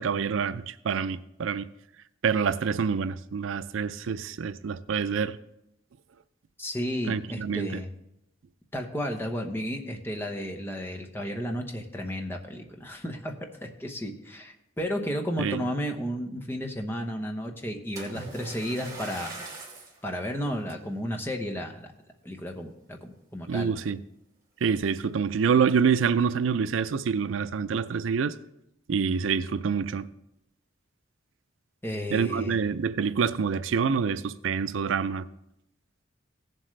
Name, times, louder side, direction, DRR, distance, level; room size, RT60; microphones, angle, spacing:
voice 1, 0.0-1.7 2.2-5.4 7.1-7.8 15.4-15.6 23.5-24.0 24.6-28.3 28.9-30.1 32.1-35.3, right 6 dB, 85° right, 0.4 m, -26 dB
voice 2, 6.6-7.9 8.7-13.4 13.6-19.3 20.0-21.9 22.2-23.7 31.8-32.6, equal, 10° left, 0.9 m, -33 dB
Splash splatter, 18.0-20.0 20.7-20.9 21.5-21.6, right 2 dB, 15° right, 2.4 m, -41 dB
16.5 x 7.5 x 3.3 m
head